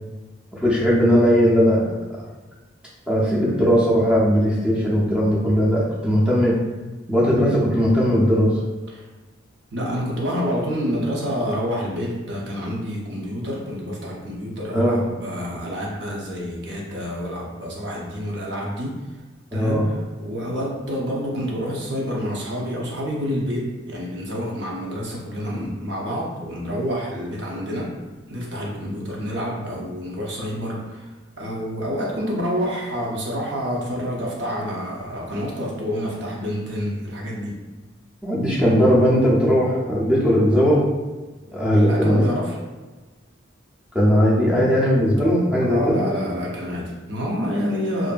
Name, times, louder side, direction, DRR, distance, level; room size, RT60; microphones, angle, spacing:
voice 1, 0.5-1.9 3.1-6.6 7.1-8.5 14.7-15.0 19.5-19.9 25.5-25.7 38.2-40.8 41.5-42.2 43.9-46.0, equal, 5° right, -6 dB, 0.5 m, -18 dB
voice 2, 9.7-19.0 19.5-27.9 28.3-31.1 31.4-37.6 41.8-42.6 45.6-48.1, equal, 60° right, -3 dB, 0.6 m, -28 dB
2.6 x 2.5 x 2.2 m, 1.2 s
head